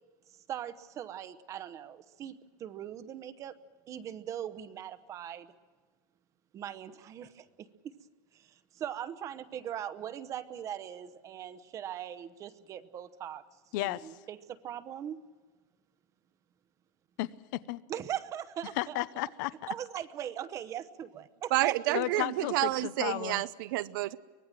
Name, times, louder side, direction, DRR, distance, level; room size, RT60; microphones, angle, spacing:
voice 1, 0.5-3.6 3.9-5.5 6.5-7.7 8.3-13.4 13.8-15.2 17.9-19.0 19.7-21.9, right 10 dB, 30° right, 0.9 m, -40 dB
voice 2, 13.7-14.1 17.2-17.8 18.8-19.7 21.9-23.4, left 17 dB, 65° left, 0.8 m, -34 dB
voice 3, 21.5-24.2, right 17 dB, 75° right, 0.8 m, -29 dB
24.0 x 19.5 x 7.6 m
supercardioid pair, 165°, 11 cm